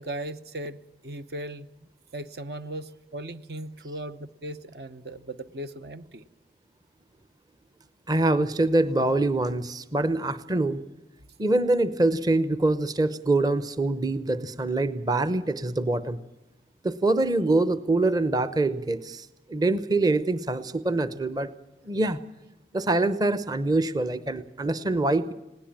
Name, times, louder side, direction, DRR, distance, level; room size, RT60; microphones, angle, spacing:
voice 1, 0.0-1.7 2.1-6.2, right 1 dB, 60° right, 11 dB, 0.9 m, -37 dB
voice 2, 8.1-10.8 11.4-16.2 16.8-21.5 21.8-22.2 22.7-25.3, right 2 dB, 20° right, 13 dB, 0.8 m, -24 dB
21.0 x 17.5 x 8.8 m, 0.99 s
head